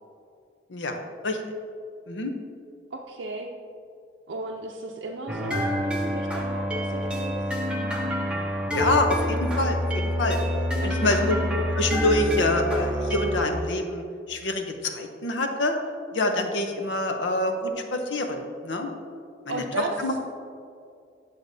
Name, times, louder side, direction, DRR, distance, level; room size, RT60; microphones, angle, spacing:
voice 1, 2.9-3.5 4.3-7.4 10.8-11.2 19.5-19.9, right 2 dB, 85° right, -1 dB, 0.5 m, -35 dB
sound 1, 5.3-13.4, equal, 5° right, 0.7 m, -27 dB
voice 2, 8.7-10.4 10.8-11.4 11.7-15.8 16.1-18.9 19.5-19.6 20.0-20.2, left 2 dB, 80° left, 5 dB, 0.8 m, -26 dB
10.0 x 6.6 x 2.7 m, 2.3 s
head